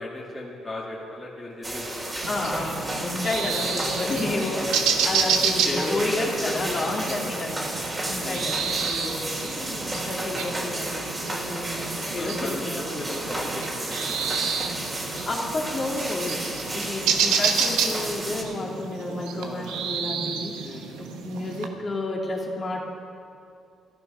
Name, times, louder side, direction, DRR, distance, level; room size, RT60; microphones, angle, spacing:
voice 1, 0.0-2.0 5.6-6.6 8.2-8.5 10.3-10.7 12.2-15.2 16.7-16.9 19.5-19.9 20.6-20.9, left 1 dB, 25° left, -5 dB, 2.4 m, -36 dB
sound 1, 1.6-18.4, right 1 dB, 25° right, 2.8 m, -32 dB
voice 2, 2.2-7.7 8.1-12.8 15.3-22.8, left 2 dB, 40° left, -2 dB, 2.7 m, -31 dB
sound 2, 2.2-21.7, right 6 dB, 85° right, 1.1 m, -30 dB
14.0 x 12.0 x 5.7 m, 2.5 s
supercardioid pair, 70°, 0 cm